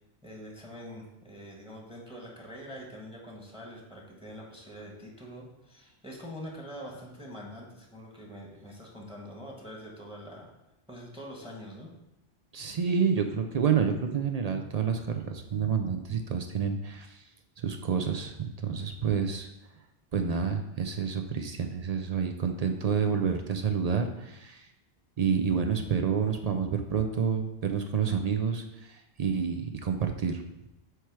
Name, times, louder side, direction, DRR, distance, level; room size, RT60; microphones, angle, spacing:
voice 1, 0.2-10.5 10.9-11.9, equal, 5° right, -2 dB, 1.2 m, -44 dB
voice 2, 12.5-17.2 17.6-19.5 20.1-24.7 25.2-30.4, right 6 dB, 50° right, 6 dB, 0.5 m, -29 dB
7.9 x 3.2 x 4.7 m, 0.90 s
omnidirectional pair, 1.0 m